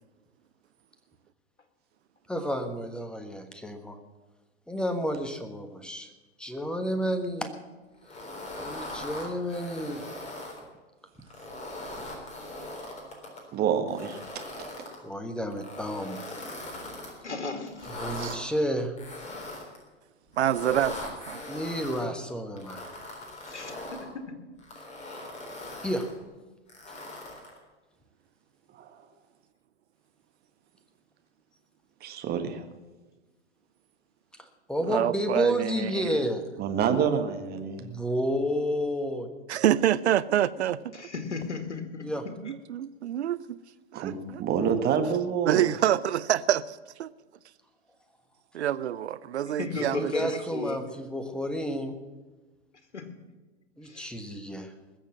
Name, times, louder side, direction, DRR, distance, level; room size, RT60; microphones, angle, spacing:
voice 1, 2.3-4.0 4.7-6.1 6.4-7.5 8.6-10.1 11.8-12.2 15.0-16.2 17.9-19.0 21.4-22.8 25.8-26.1 26.9-27.0 34.4-36.4 37.8-39.3 42.0-42.2 49.8-51.9 53.8-54.7, equal, 5° left, 1.4 m, -31 dB
sound 1, 8.0-10.6 11.2-13.4 13.9-15.0 15.5-17.1 17.7-18.4 19.0-19.8 20.3-22.0 22.6-24.1 24.6-26.1 26.7-27.6, left 2 dB, 20° left, 3.7 m, -40 dB
voice 2, 13.5-14.2 25.2-25.4 28.8-28.9 32.0-32.6 36.6-37.9 43.9-45.7, right 7 dB, 30° right, 1.7 m, -27 dB
voice 3, 17.2-17.9 23.4-24.4 40.9-42.5 49.6-50.8 52.9-53.2 53.8-54.2, left 3 dB, 80° left, 2.1 m, -35 dB
voice 4, 20.4-21.4 34.9-36.1 39.5-40.8 42.4-43.6 43.9-44.4 45.5-47.1 48.5-50.1, right 11 dB, 70° right, 0.7 m, -27 dB
20.5 x 7.2 x 7.3 m
hypercardioid pair, 110°, 34 cm